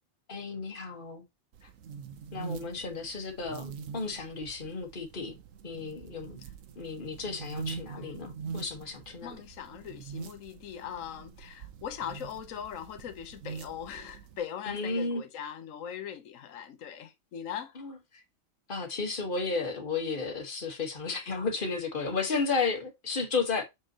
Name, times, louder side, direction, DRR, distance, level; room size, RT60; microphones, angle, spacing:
voice 1, 0.3-1.2 2.3-5.4 5.6-6.4 6.8-9.3 14.7-15.2 17.8-17.9 18.7-23.6, left 4 dB, 40° left, 1.7 m, -33 dB
sound 1, 1.5-14.4, right 6 dB, 75° right, 1.2 m, -44 dB
voice 2, 8.0-8.3 9.2-17.8, left 8 dB, 75° left, 1.3 m, -40 dB
6.7 x 5.4 x 3.0 m
omnidirectional pair, 1.4 m